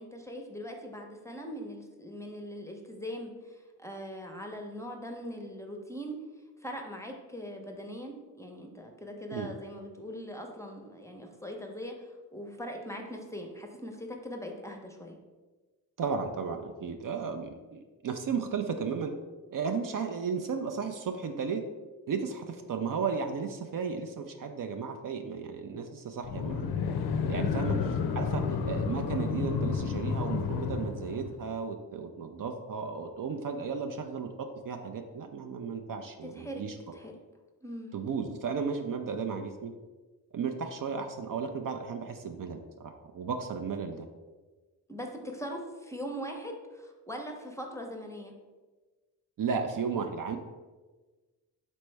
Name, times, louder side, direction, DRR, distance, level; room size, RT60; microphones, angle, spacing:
voice 1, 0.0-6.2 6.6-15.2 27.6-27.9 36.2-36.6 36.9-37.1 37.6-38.0 44.9-48.3, equal, 5° left, 2 dB, 0.7 m, -41 dB
voice 2, 16.0-19.1 19.5-21.6 22.1-26.7 27.3-27.8 28.2-37.0 37.9-39.7 40.3-44.1 49.4-50.4, right 5 dB, 55° right, 5 dB, 0.5 m, -34 dB
sound 1, 26.2-31.5, left 6 dB, 65° left, 0.5 m, -31 dB
4.2 x 3.3 x 3.2 m, 1.3 s
cardioid pair, 50°, 41 cm